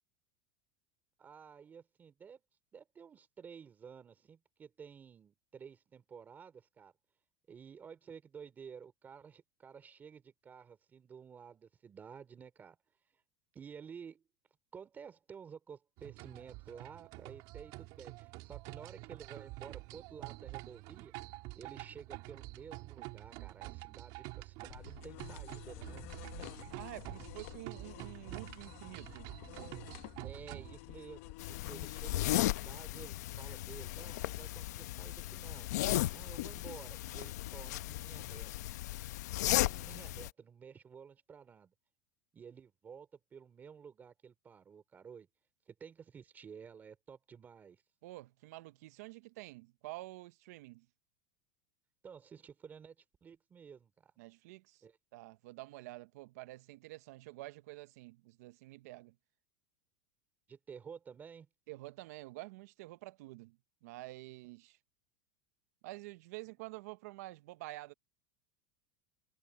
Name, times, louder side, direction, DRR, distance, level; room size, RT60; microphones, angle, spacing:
voice 1, 1.2-2.4 2.7-6.9 7.5-12.8 13.5-14.2 14.7-21.1 21.6-26.5 30.2-35.7 36.1-38.5 39.3-41.7 42.3-45.3 45.7-47.8 52.0-54.1 54.8-55.0 60.5-61.5, right 6 dB, 20° right, 3.1 m, -52 dB
sound 1, 16.0-30.8, right 22 dB, 50° right, 3.2 m, -48 dB
sound 2, 24.6-33.8, left 20 dB, 60° left, 1.1 m, -51 dB
voice 2, 26.7-29.4 48.0-50.9 54.2-54.8 55.1-59.2 61.7-64.8 65.8-67.9, right 20 dB, 70° right, 0.7 m, -49 dB
sound 3, 31.4-40.3, left 16 dB, 80° left, 0.7 m, -36 dB
supercardioid pair, 150°, 9 cm